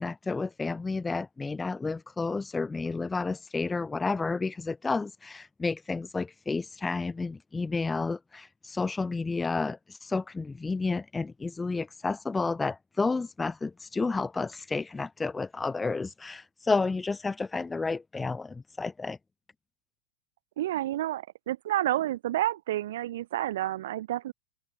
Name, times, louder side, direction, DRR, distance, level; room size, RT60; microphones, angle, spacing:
voice 1, 0.0-19.2, left 3 dB, 10° left, 7.1 m, -31 dB
voice 2, 20.6-24.3, right 13 dB, 55° right, 1.9 m, -30 dB
figure-of-eight pair, 90°, 0 cm